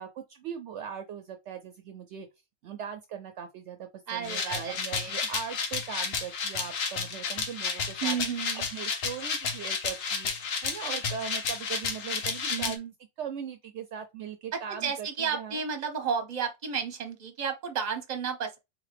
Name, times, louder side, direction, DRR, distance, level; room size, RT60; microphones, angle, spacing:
voice 1, 0.0-2.3 2.6-12.8 13.2-15.6, right 8 dB, 70° right, 0.8 m, -40 dB
voice 2, 4.1-5.1 8.0-8.7 12.5-12.9 14.5-18.6, right 6 dB, 40° right, 0.9 m, -32 dB
sound 1, 4.2-12.7, left 5 dB, 85° left, 1.2 m, -32 dB
3.9 x 2.8 x 3.3 m
omnidirectional pair, 1.3 m